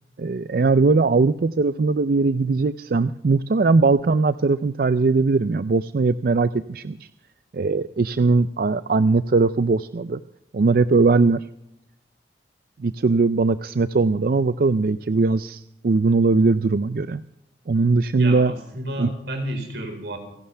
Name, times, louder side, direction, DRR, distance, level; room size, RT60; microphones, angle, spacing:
voice 1, 0.2-7.1 7.5-10.2 10.5-11.5 12.8-17.2 17.7-18.5 19.0-19.1, right 3 dB, 55° right, 13 dB, 0.4 m, -20 dB
voice 2, 18.2-20.2, right 1 dB, 80° right, 4 dB, 4.4 m, -31 dB
28.5 x 11.5 x 3.4 m, 0.81 s
head